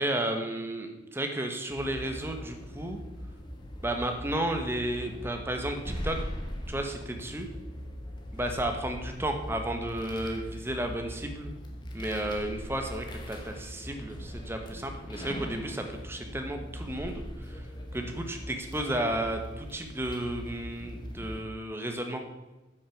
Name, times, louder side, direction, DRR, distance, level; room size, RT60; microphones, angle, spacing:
voice 1, 0.0-3.0 3.8-6.2 6.7-7.5 8.3-11.5 11.9-17.7 17.9-22.2, right 1 dB, 10° right, 4 dB, 1.1 m, -33 dB
sound 1, 1.7-21.4, equal, 25° left, 1.3 m, -40 dB
9.6 x 6.4 x 7.1 m, 1.1 s
head